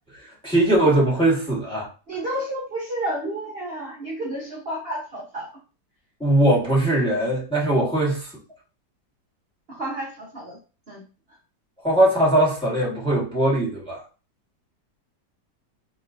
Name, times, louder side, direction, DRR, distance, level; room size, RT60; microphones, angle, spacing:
voice 1, 0.4-1.9 6.2-8.3 11.8-14.0, right 1 dB, 5° left, -4 dB, 1.3 m, -20 dB
voice 2, 2.1-5.5 9.7-10.6 10.9-11.0, right 1 dB, 45° right, -3 dB, 0.9 m, -31 dB
4.3 x 3.1 x 2.5 m, 0.35 s
omnidirectional pair, 1.9 m